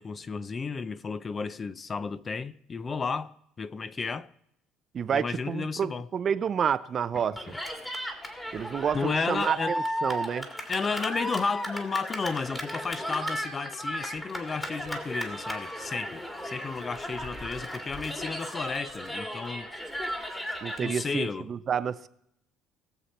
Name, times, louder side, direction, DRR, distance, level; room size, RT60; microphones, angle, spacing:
voice 1, 0.0-4.3 5.1-6.1 7.1-7.2 8.9-9.7 10.7-19.7 20.8-21.5, left 4 dB, 25° left, 0.4 m, -33 dB
voice 2, 4.9-7.4 8.5-9.8 10.0-10.5 20.6-22.1, right 7 dB, 35° right, 0.5 m, -29 dB
Cheering, 7.4-21.0, equal, 10° left, 1.9 m, -35 dB
20.5 x 7.3 x 4.2 m
cardioid pair, 140°, 0 cm